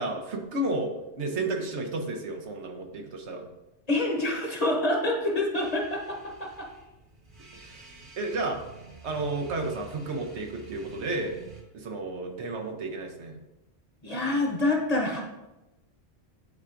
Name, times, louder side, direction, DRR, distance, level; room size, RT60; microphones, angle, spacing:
voice 1, 0.0-3.5 7.6-7.9 8.2-8.7 9.0-11.4 11.7-13.4, right 2 dB, 75° right, 2 dB, 1.2 m, -32 dB
voice 2, 3.9-6.7 14.0-15.2, left 2 dB, 35° left, 0 dB, 1.1 m, -27 dB
sound 1, 5.5-11.6, right 4 dB, 50° right, 1.4 m, -49 dB
9.7 x 4.4 x 2.5 m, 0.98 s
omnidirectional pair, 1.2 m